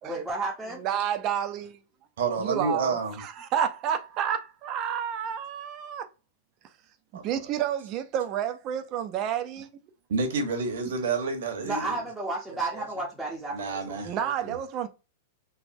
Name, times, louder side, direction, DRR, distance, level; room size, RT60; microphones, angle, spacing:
voice 1, 0.0-0.8 11.6-14.3, right 2 dB, 5° right, 0.7 m, -33 dB
voice 2, 0.8-1.8 2.4-6.1 7.1-9.7 14.0-14.9, right 9 dB, 40° right, 0.4 m, -30 dB
voice 3, 2.2-3.1 7.1-7.2 10.1-11.9 12.5-12.8 13.5-14.1 14.4-14.6, right 4 dB, 75° right, 0.9 m, -29 dB
3.3 x 2.1 x 2.6 m
hypercardioid pair, 120°, 0 cm